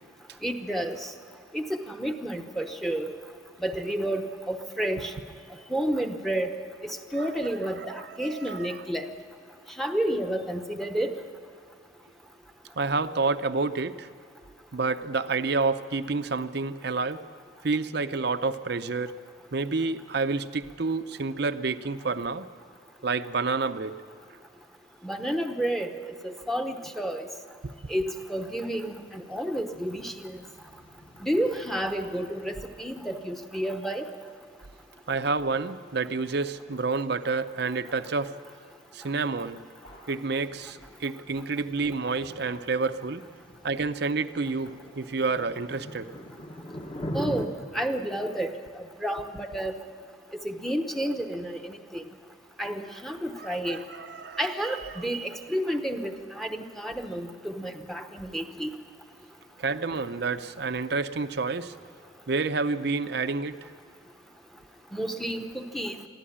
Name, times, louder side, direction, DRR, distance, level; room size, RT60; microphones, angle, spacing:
voice 1, 0.4-1.1 1.5-3.2 3.6-5.1 5.7-6.5 6.8-9.1 9.8-11.2 25.0-25.9 26.2-27.3 27.9-30.4 31.2-34.1 47.1-49.8 50.4-52.0 52.6-53.8 54.4-58.7 64.9-65.9, right 1 dB, ahead, 6 dB, 0.9 m, -30 dB
voice 2, 7.8-8.8 12.8-14.1 14.7-17.2 17.6-19.2 19.5-22.5 23.0-24.0 27.6-27.7 35.1-38.4 38.9-39.7 40.1-43.2 43.6-46.1 53.4-54.9 59.6-61.7 62.3-63.6, right 4 dB, 55° right, 10 dB, 0.7 m, -29 dB
sound 1, 27.6-47.5, equal, 25° left, 1.1 m, -44 dB
sound 2, 39.7-40.4 42.4-43.0 44.4-45.2 46.0-47.9, left 1 dB, 65° left, 6.1 m, -55 dB
22.5 x 14.0 x 8.7 m, 2.3 s
head